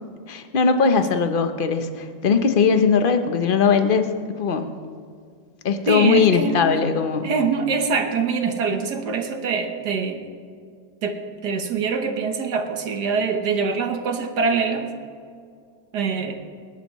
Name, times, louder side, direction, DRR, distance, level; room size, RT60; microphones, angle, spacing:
voice 1, 0.3-4.1 4.4-4.7 5.6-7.3, left 5 dB, 45° left, 7 dB, 0.7 m, -19 dB
voice 2, 5.9-6.9 7.2-10.2 11.0-14.9 15.9-16.3, right 5 dB, 65° right, 5 dB, 1.7 m, -24 dB
23.5 x 11.5 x 3.1 m, 2.2 s
omnidirectional pair, 2.0 m